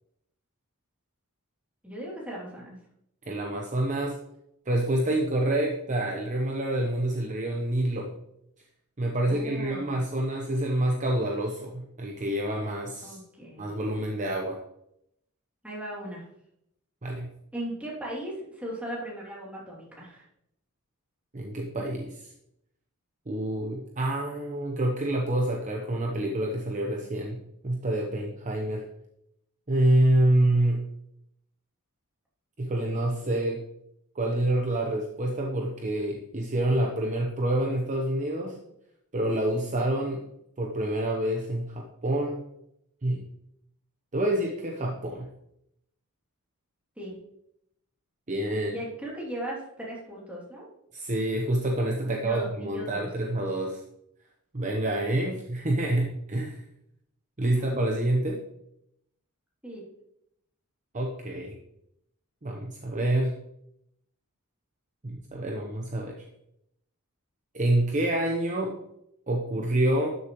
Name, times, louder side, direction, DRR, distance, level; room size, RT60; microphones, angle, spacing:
voice 1, 1.8-2.8 9.3-10.0 13.0-13.7 15.6-16.2 17.5-20.3 47.0-47.2 48.5-50.7 52.0-53.1 57.5-57.6 59.6-59.8, right 1 dB, 5° right, -5 dB, 2.8 m, -38 dB
voice 2, 3.2-4.2 4.7-8.1 9.0-13.2 13.6-14.6 17.0-17.3 21.3-22.3 23.3-28.8 29.7-30.8 32.6-33.6 34.1-38.6 39.1-40.2 40.6-42.4 43.0-43.2 44.1-45.3 48.3-48.7 50.9-53.8 54.5-56.6 57.4-58.4 60.9-61.6 62.4-63.3 65.0-66.2 67.5-68.7 69.3-70.2, right 1 dB, 35° right, 0 dB, 0.9 m, -27 dB
12.0 x 6.8 x 3.0 m, 0.79 s
head